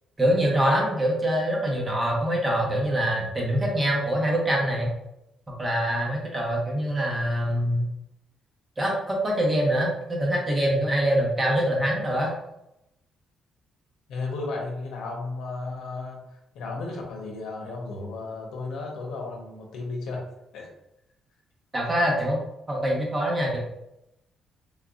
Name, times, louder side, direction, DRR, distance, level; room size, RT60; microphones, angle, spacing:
voice 1, 0.2-4.9 5.6-7.8 8.8-12.3 21.7-22.4 22.7-23.6, equal, 25° right, -2 dB, 1.1 m, -24 dB
voice 2, 14.1-16.2 16.5-20.2 20.5-20.7, left 3 dB, 85° left, 0 dB, 0.8 m, -34 dB
3.6 x 2.7 x 2.4 m, 0.85 s
cardioid pair, 90°, 0 cm